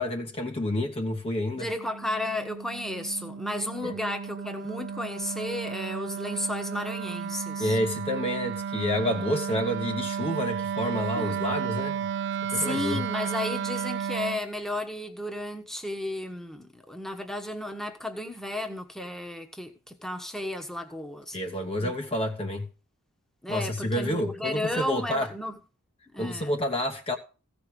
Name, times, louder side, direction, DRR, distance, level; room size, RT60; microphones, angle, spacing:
voice 1, 0.0-1.7 3.8-3.9 7.6-12.1 12.5-13.0 21.3-22.7 23.5-25.3 26.2-27.2, left 1 dB, 25° left, 0.9 m, -29 dB
Wind instrument woodwind instrument, 1.5-14.4, right 7 dB, 55° right, 0.5 m, -33 dB
voice 2, 1.6-7.8 11.1-11.4 12.5-21.4 21.8-21.9 23.4-25.6 26.1-26.6, left 1 dB, ahead, 1.2 m, -33 dB
15.5 x 5.2 x 6.1 m
head